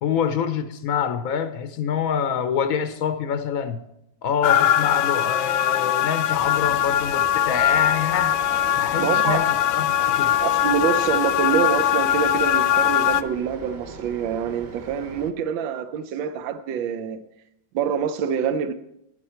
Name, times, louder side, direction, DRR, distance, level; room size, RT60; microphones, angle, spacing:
voice 1, 0.0-3.8 4.2-8.4 8.8-10.4, left 7 dB, 65° left, 0.9 m, -26 dB
sound 1, 4.4-13.2, left 11 dB, 90° left, 1.3 m, -21 dB
sound 2, 6.3-15.3, right 3 dB, 40° right, 0.7 m, -41 dB
voice 2, 9.0-9.5 10.4-17.2 17.7-18.7, right 7 dB, 80° right, 1.5 m, -25 dB
14.0 x 9.7 x 4.3 m
omnidirectional pair, 2.1 m